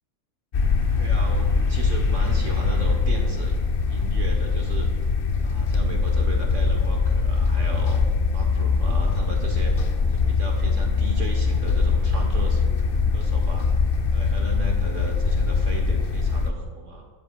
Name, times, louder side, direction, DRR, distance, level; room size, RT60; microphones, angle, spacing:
sound 1, 0.5-16.5, left 4 dB, 50° left, 0.7 m, -22 dB
voice 1, 1.0-3.6 3.9-4.9 5.4-12.9 13.1-13.7 14.1-17.0, right 3 dB, 50° right, 2 dB, 1.4 m, -36 dB
13.0 x 13.0 x 2.3 m, 1.5 s
omnidirectional pair, 1.7 m